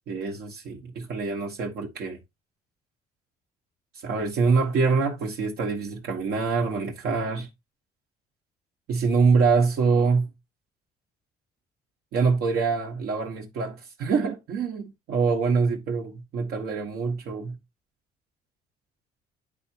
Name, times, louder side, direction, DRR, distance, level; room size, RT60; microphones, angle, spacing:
voice 1, 0.1-2.2 4.0-7.5 8.9-10.3 12.1-17.6, right 4 dB, 70° right, 1.2 m, -25 dB
10.5 x 3.5 x 2.8 m
cardioid pair, 110°, 17 cm